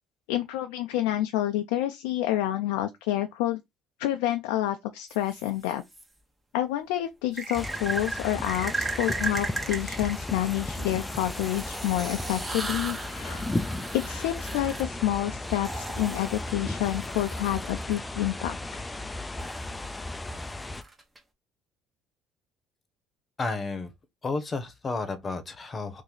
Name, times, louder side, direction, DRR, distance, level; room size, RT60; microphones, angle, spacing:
voice 1, 0.3-3.6 4.0-5.8 6.5-13.4 13.9-18.8, left 13 dB, 85° left, 0.4 m, -28 dB
sound 1, 5.1-6.0 7.3-18.0 19.4-21.2, right 2 dB, 15° right, 1.0 m, -37 dB
sound 2, 7.5-20.8, left 2 dB, 15° left, 0.4 m, -35 dB
voice 2, 23.4-23.9 24.2-26.0, left 3 dB, 30° left, 0.9 m, -32 dB
2.9 x 2.6 x 3.9 m
supercardioid pair, 80°, 0 cm